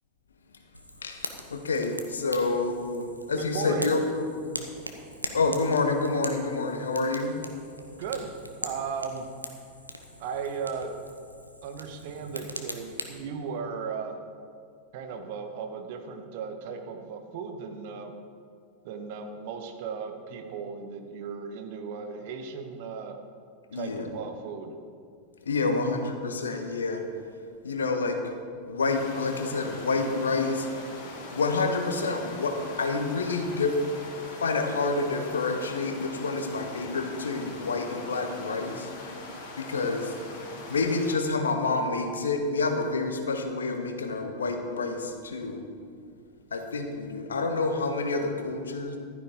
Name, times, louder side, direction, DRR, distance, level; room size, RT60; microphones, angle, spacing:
Fire, 0.7-13.2, equal, 90° left, 1.0 m, -42 dB
voice 1, 1.0-4.6 5.3-7.3 23.7-24.1 25.4-27.0 27.6-28.2 28.7-30.7 31.3-33.8 34.4-38.9 39.6-40.2 40.7-45.6 46.5-49.0, left 3 dB, 70° left, 5 dB, 1.3 m, -28 dB
voice 2, 3.3-4.0 8.0-8.3 8.6-9.3 10.2-10.9 11.6-14.2 14.9-18.1 18.8-23.2 23.7-24.8, right 5 dB, 50° right, 6 dB, 1.4 m, -36 dB
sound 1, 28.9-41.1, left 2 dB, 45° left, 3.4 m, -42 dB
15.0 x 12.0 x 3.8 m, 2.2 s
figure-of-eight pair, 90°, 0 cm